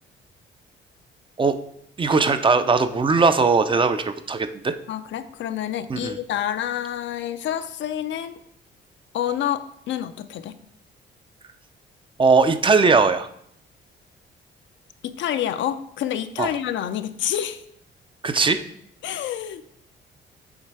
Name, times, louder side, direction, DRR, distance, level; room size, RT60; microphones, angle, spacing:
voice 1, 2.0-4.7 5.9-6.2 12.2-13.3 16.4-16.5 18.2-18.6, right 4 dB, 25° right, 10 dB, 0.4 m, -19 dB
voice 2, 4.9-8.4 9.1-10.6 15.0-17.6 19.0-19.6, left 10 dB, 70° left, 10 dB, 0.5 m, -28 dB
7.3 x 3.3 x 4.6 m, 0.69 s
cardioid pair, 90°, 20 cm